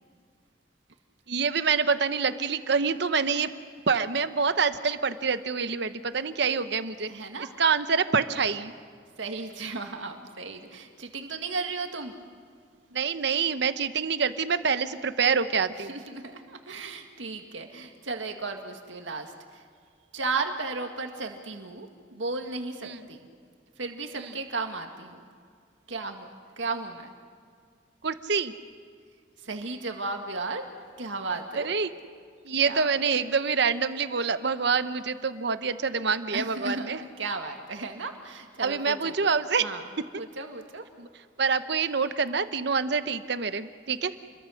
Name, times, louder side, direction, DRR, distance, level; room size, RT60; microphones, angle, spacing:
voice 1, 1.3-3.5 3.9-7.1 7.6-8.7 12.9-15.9 22.9-23.0 28.0-28.5 31.6-31.9 32.4-37.0 38.6-39.6 41.0-41.1 41.4-44.1, right 5 dB, 65° right, 11 dB, 1.0 m, -26 dB
voice 2, 7.1-7.5 9.2-12.1 15.7-19.6 20.1-23.2 23.8-25.2 25.9-26.3 26.6-27.1 29.4-30.7 31.0-31.7 32.6-33.2 36.3-39.1 39.6-39.9 40.2-40.9, right 3 dB, 85° right, 4 dB, 2.0 m, -35 dB
29.5 x 22.5 x 6.5 m, 2.1 s
head